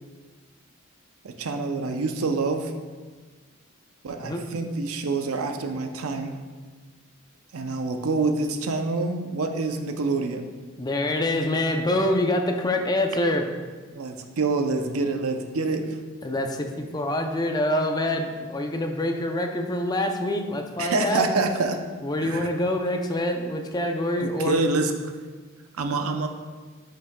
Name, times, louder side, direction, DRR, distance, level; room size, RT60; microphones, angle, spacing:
voice 1, 1.2-2.7 4.0-6.4 7.5-10.5 13.9-16.0 20.8-21.8 22.2-22.5 24.2-24.9 25.8-26.3, right 3 dB, 90° right, 5 dB, 0.6 m, -26 dB
voice 2, 10.8-13.5 16.2-21.3 22.0-24.6, left 1 dB, 20° left, 4 dB, 0.5 m, -25 dB
8.4 x 5.5 x 2.2 m, 1.4 s
head